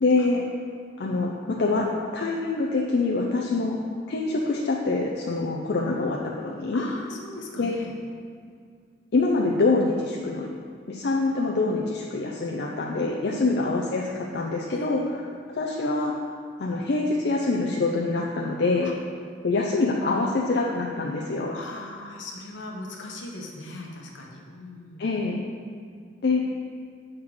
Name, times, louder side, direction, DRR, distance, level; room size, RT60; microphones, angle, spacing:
voice 1, 0.0-0.5 1.0-1.9 2.1-3.8 4.1-6.8 7.6-7.7 9.1-10.5 10.9-15.0 15.5-16.1 16.6-18.9 19.4-21.5 25.0-25.4 26.2-26.4, left 3 dB, 60° left, -2 dB, 0.5 m, -25 dB
voice 2, 6.7-7.9 13.0-13.5 14.7-15.1 18.8-18.9 21.5-25.1, left 1 dB, 75° left, -1 dB, 1.0 m, -39 dB
6.5 x 3.6 x 6.2 m, 2.1 s
head